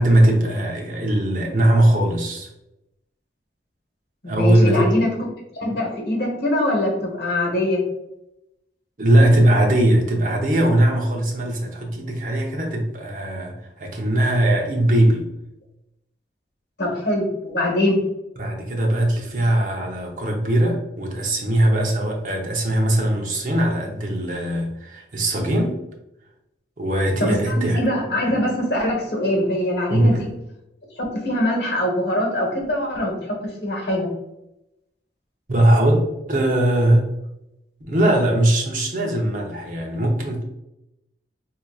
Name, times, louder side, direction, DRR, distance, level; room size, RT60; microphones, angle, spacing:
voice 1, 0.0-2.5 4.3-4.9 9.0-15.3 18.4-25.8 26.8-27.8 29.9-30.2 35.5-37.1 37.8-40.4, right 1 dB, 45° right, 1 dB, 0.7 m, -20 dB
voice 2, 4.2-5.1 5.6-7.8 16.8-18.0 27.2-30.3 31.0-34.1, left 1 dB, 70° left, -1 dB, 1.1 m, -23 dB
4.8 x 2.8 x 2.3 m, 0.88 s
head